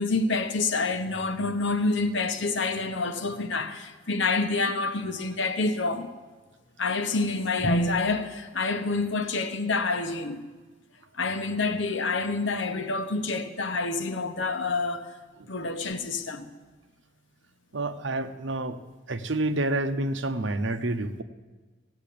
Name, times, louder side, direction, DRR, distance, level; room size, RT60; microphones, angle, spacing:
voice 1, 0.0-6.1 6.8-10.4 11.2-15.1 15.5-16.5, left 3 dB, 90° left, 1.1 m, -27 dB
voice 2, 17.7-18.8 19.1-21.2, right 2 dB, 85° right, 0.9 m, -28 dB
15.5 x 8.8 x 8.6 m
head